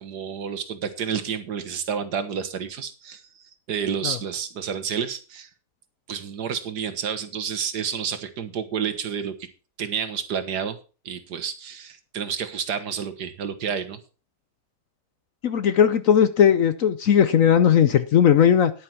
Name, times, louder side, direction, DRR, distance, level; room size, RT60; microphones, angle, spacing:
voice 1, 0.0-5.5 6.1-9.5 9.8-10.8 11.1-14.0, right 7 dB, 70° right, 1.8 m, -30 dB
voice 2, 15.4-18.7, left 8 dB, 60° left, 1.0 m, -18 dB
10.5 x 9.2 x 4.6 m
omnidirectional pair, 1.9 m